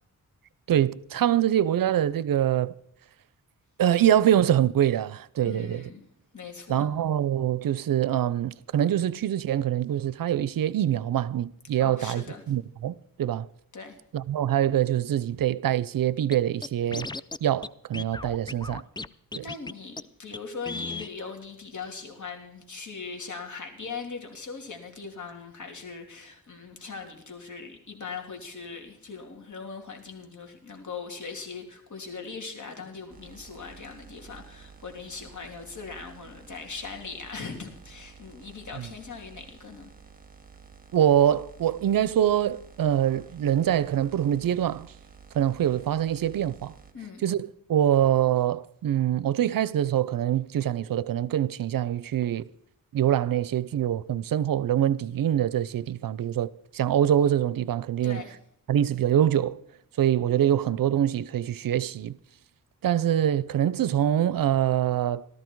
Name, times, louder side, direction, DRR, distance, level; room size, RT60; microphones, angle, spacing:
voice 1, 0.7-2.7 3.8-5.9 6.7-13.5 14.1-17.1 17.4-18.8 19.3-19.4 38.8-38.9 40.9-44.9 45.3-46.7 47.2-52.4 52.9-58.2 58.7-59.6 60.0-62.1 62.8-65.3, right 10 dB, 70° right, 0.6 m, -24 dB
voice 2, 5.4-6.0 6.3-6.9 11.8-12.5 13.7-14.0 19.4-39.9 46.9-47.2 58.0-58.3, left 5 dB, 55° left, 3.1 m, -40 dB
Scratching (performance technique), 16.3-16.4 16.6-17.4 17.6-17.7 17.9-19.1 19.3-19.7 20.0-20.1 20.3-20.4 20.7-21.1, left 3 dB, 15° left, 0.4 m, -35 dB
sound 1, 33.1-46.9, right 6 dB, 25° right, 2.1 m, -51 dB
14.0 x 13.5 x 4.6 m
cardioid pair, 75°, 35 cm